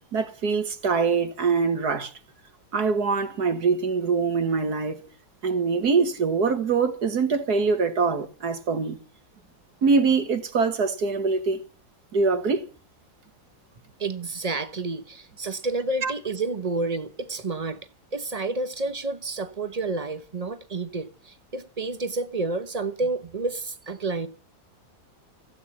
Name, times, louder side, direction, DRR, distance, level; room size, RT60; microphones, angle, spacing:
voice 1, 0.1-2.1 2.7-5.0 5.4-9.0 9.8-11.6 12.1-12.6 16.0-16.1, right 4 dB, 55° right, 2.0 m, -23 dB
voice 2, 14.0-17.8 18.1-24.3, right 3 dB, 30° right, 0.7 m, -30 dB
15.5 x 9.3 x 7.2 m
omnidirectional pair, 2.1 m